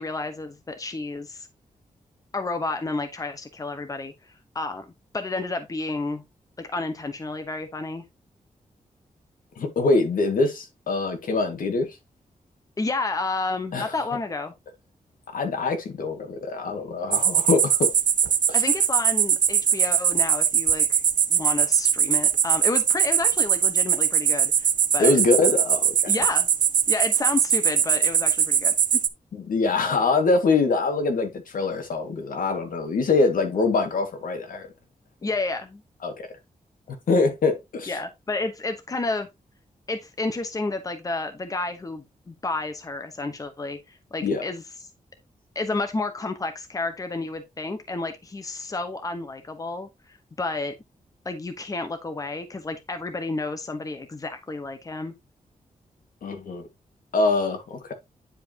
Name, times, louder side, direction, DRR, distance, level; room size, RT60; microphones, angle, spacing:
voice 1, 0.0-1.5 2.3-4.9 5.1-6.2 6.6-8.0 12.8-14.5 18.5-21.0 21.3-25.2 26.1-26.5 26.9-28.7 35.2-35.8 37.9-39.3 39.9-44.6 45.5-50.7 51.2-55.1, left 3 dB, 25° left, 1.1 m, -31 dB
voice 2, 9.6-12.0 13.7-13.9 15.3-17.9 25.0-26.1 29.3-34.7 36.0-36.3 36.9-38.0 44.2-44.4 56.2-56.6 57.1-57.9, left 3 dB, 85° left, 1.9 m, -24 dB
sound 1, 17.1-29.1, right 8 dB, 70° right, 0.7 m, -21 dB
10.0 x 4.9 x 2.9 m
wide cardioid pair, 140°, 14 cm